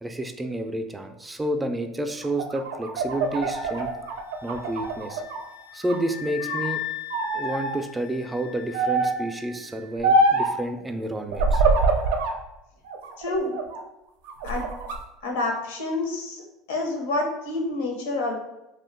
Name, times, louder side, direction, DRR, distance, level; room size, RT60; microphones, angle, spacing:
voice 1, 0.0-3.9 4.4-5.2 5.7-6.8 7.3-11.6, right 1 dB, 15° right, 6 dB, 0.3 m, -30 dB
sound 1, 2.2-5.4 5.8-6.7 7.1-7.7 8.7-9.3 10.0-10.6 11.3-12.4 12.9-13.8 14.3-15.0, right 2 dB, 80° right, 0.4 m, -24 dB
sound 2, 3.1-9.9, left 13 dB, 65° left, 0.3 m, -39 dB
voice 2, 13.2-13.6 14.4-14.7 15.2-16.4 16.7-18.3, left 2 dB, 90° left, 2 dB, 0.7 m, -28 dB
2.5 x 2.1 x 3.6 m, 0.94 s
supercardioid pair, 95°, 0 cm